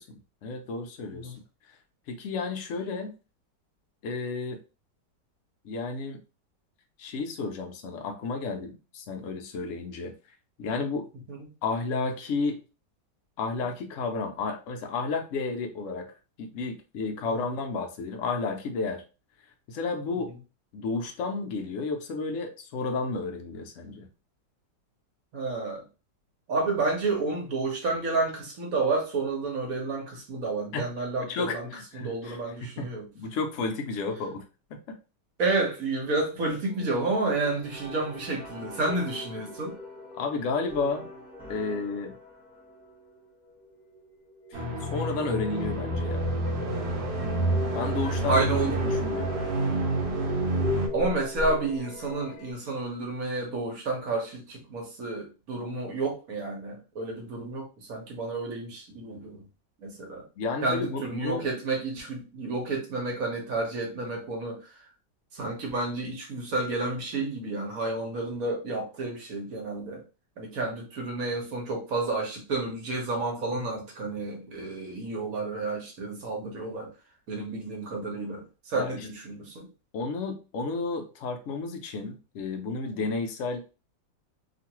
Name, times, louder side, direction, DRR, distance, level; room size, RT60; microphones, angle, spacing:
voice 1, 0.0-1.4 2.1-3.1 4.0-4.6 5.6-6.2 7.0-10.1 10.6-11.1 11.6-12.6 13.4-16.1 16.4-19.0 19.7-20.3 20.7-24.1 30.7-30.9 31.2-32.9 33.1-34.4 34.7-35.0 40.1-41.1 41.5-42.1 44.5-46.3 47.7-48.5 48.8-49.3 60.4-61.4 78.7-79.1 79.9-83.7, left 4 dB, 75° left, 5 dB, 0.7 m, -32 dB
voice 2, 25.3-25.8 26.5-31.7 31.9-33.1 35.4-39.7 47.2-47.6 48.3-48.7 50.9-59.5 59.8-60.2 60.6-64.7 65.3-70.0 70.4-76.9 77.3-79.7, right 3 dB, 55° right, 0 dB, 1.3 m, -30 dB
sound 1, 36.7-52.5, left 3 dB, 5° left, 0.5 m, -39 dB
sound 2, 44.5-50.9, right 2 dB, 70° right, 1.3 m, -28 dB
3.0 x 2.5 x 2.9 m, 0.32 s
omnidirectional pair, 1.9 m